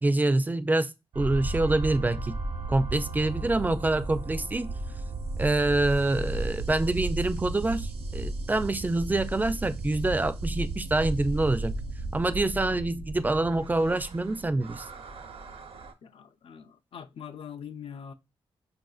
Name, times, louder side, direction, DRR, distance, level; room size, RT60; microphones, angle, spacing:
voice 1, 0.0-2.4 2.7-4.7 5.4-11.7 12.1-14.8, right 2 dB, 15° right, 0.3 m, -26 dB
sound 1, 1.1-15.9, right 2 dB, 65° right, 0.6 m, -34 dB
voice 2, 16.0-18.1, left 8 dB, 65° left, 0.4 m, -43 dB
5.4 x 2.5 x 2.3 m
wide cardioid pair, 100°, 10 cm